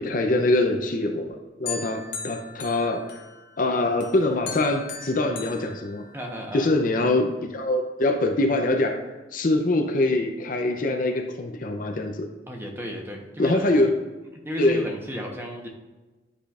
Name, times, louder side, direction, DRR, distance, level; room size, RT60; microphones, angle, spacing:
voice 1, 0.0-3.0 3.6-6.0 6.5-9.0 9.3-12.3 13.4-13.9 14.6-14.9, left 2 dB, 45° left, 3 dB, 0.6 m, -24 dB
sound 1, 1.7-3.6 4.0-6.5, left 6 dB, 75° left, 1.1 m, -38 dB
voice 2, 6.1-6.7 12.5-13.6 14.4-15.7, equal, 10° right, 0 dB, 1.0 m, -33 dB
10.5 x 5.0 x 2.5 m, 1.2 s
head